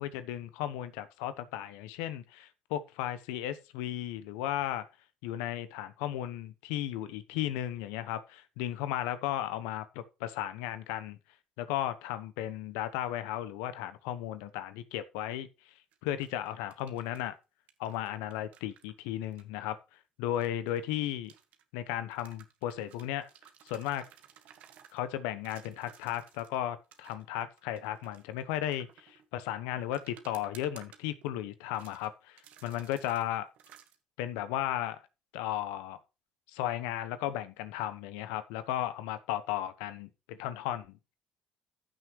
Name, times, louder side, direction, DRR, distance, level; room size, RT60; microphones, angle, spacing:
voice 1, 0.0-4.9 5.2-11.2 11.6-15.7 16.0-17.4 17.8-19.8 20.2-21.3 21.7-23.3 23.6-24.1 24.9-33.5 34.2-35.0 35.3-36.0 36.5-41.1, left 12 dB, 80° left, 1.0 m, -35 dB
sound 1, 15.9-17.3 17.7-19.4 20.3-21.6 22.1-25.0 25.4-26.6 26.9-29.3 29.9-31.4 31.7-32.1 32.4-33.3 33.5-34.0, right 9 dB, 65° right, 1.6 m, -57 dB
14.5 x 6.3 x 3.2 m
hypercardioid pair, 55°, 3 cm